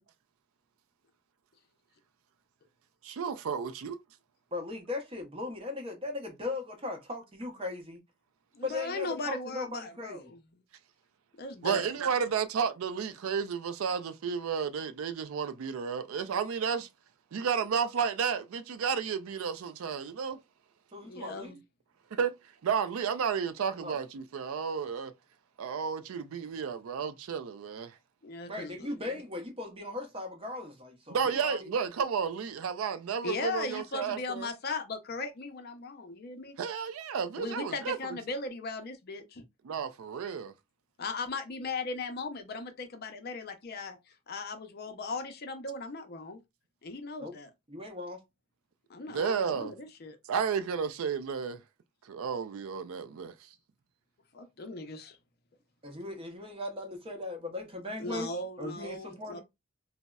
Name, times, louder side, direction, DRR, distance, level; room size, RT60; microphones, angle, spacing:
voice 1, 3.0-4.0 11.6-16.9 17.3-20.4 22.1-22.3 22.6-25.1 25.6-27.9 31.1-34.5 36.6-38.0 39.6-40.5 49.1-49.7 50.3-51.6 52.1-53.3, right 6 dB, 75° right, 0.4 m, -32 dB
voice 2, 4.5-8.0 8.6-10.3 20.9-21.6 23.8-24.0 28.4-31.7 47.2-47.3 47.7-48.2 55.8-58.3 58.6-59.4, left 2 dB, 25° right, 0.7 m, -38 dB
voice 3, 8.5-10.4 11.4-12.2 21.0-21.6 28.2-28.9 33.2-36.6 37.4-39.4 41.0-44.0 44.3-46.4 46.8-47.5 48.9-50.2 54.3-55.2 58.0-59.4, left 3 dB, 45° left, 0.5 m, -38 dB
3.9 x 2.0 x 2.2 m
head